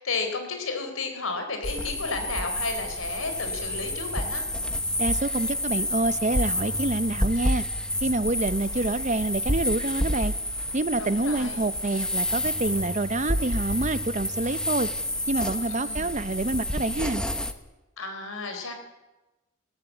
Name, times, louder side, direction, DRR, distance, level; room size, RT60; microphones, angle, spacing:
voice 1, 0.0-4.5 11.0-11.6 15.7-16.0 18.0-18.7, left 3 dB, 80° left, 6 dB, 3.9 m, -32 dB
sound 1, 1.6-17.5, left 1 dB, 5° left, 0.9 m, -29 dB
voice 2, 5.0-7.6 8.0-10.3 10.7-14.9 15.3-17.2, right 2 dB, 35° right, 14 dB, 0.7 m, -27 dB
19.5 x 17.5 x 8.3 m, 1.1 s
head